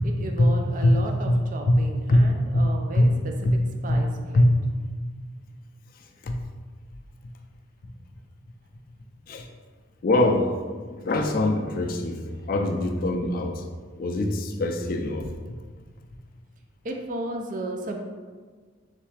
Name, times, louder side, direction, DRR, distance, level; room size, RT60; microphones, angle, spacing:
voice 1, 0.0-3.1 3.8-4.4 12.3-12.6 16.8-18.0, right 1 dB, 40° right, 3 dB, 0.4 m, -34 dB
voice 2, 2.1-3.2 3.4-3.6 3.9-4.1 4.3-4.5 6.2-6.4 9.3-9.5 10.0-10.6 10.9-13.6 14.0-15.3, left 1 dB, 45° left, 3 dB, 0.3 m, -22 dB
3.8 x 3.2 x 3.2 m, 1.5 s
head